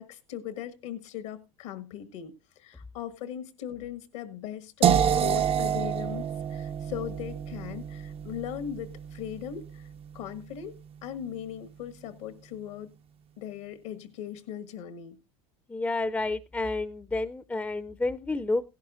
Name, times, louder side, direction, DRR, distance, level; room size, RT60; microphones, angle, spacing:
voice 1, 0.0-9.9 10.1-12.9 13.4-15.2, left 10 dB, 80° left, 11 dB, 1.6 m, -39 dB
sound 1, 4.8-10.7, right 8 dB, 40° right, 0.5 m, -29 dB
voice 2, 15.7-18.6, left 2 dB, 10° left, 16 dB, 0.5 m, -30 dB
16.5 x 11.5 x 2.5 m, 0.26 s
hypercardioid pair, 85°, 16 cm